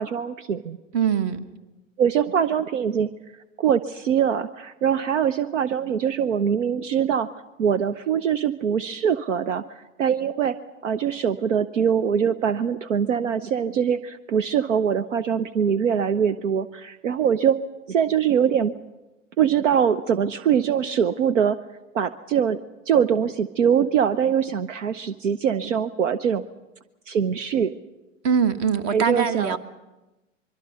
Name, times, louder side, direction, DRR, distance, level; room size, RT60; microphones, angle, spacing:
voice 1, 0.0-0.8 2.0-3.1 3.6-7.3 7.6-9.6 10.0-10.6 10.8-17.6 17.9-18.7 19.4-21.6 21.9-22.6 22.9-26.4 27.1-27.7 28.9-29.6, right 8 dB, 70° right, 14 dB, 0.8 m, -23 dB
voice 2, 0.9-1.4 28.2-29.6, right 7 dB, 35° right, 12 dB, 1.5 m, -22 dB
24.5 x 23.0 x 5.7 m, 1.1 s
figure-of-eight pair, 100°, 39 cm